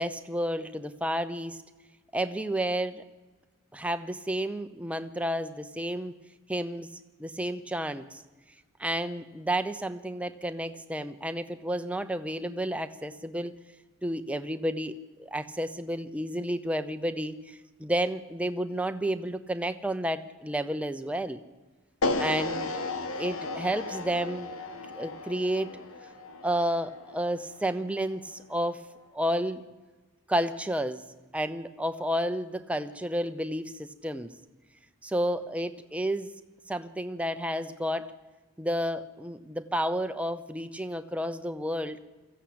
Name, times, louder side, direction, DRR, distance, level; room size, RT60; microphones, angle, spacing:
voice 1, 0.0-1.6 2.1-3.0 3.7-6.2 6.5-6.9 7.2-8.2 8.8-13.5 14.0-21.4 22.2-22.7 23.1-24.5 25.0-25.7 26.4-28.9 29.1-29.6 30.3-31.0 31.3-34.3 35.0-36.3 36.7-38.1 38.6-42.0, right 1 dB, 5° right, 9 dB, 0.7 m, -31 dB
sound 1, 22.0-28.2, left 3 dB, 80° left, 1.4 m, -34 dB
22.5 x 14.5 x 8.7 m, 1.3 s
head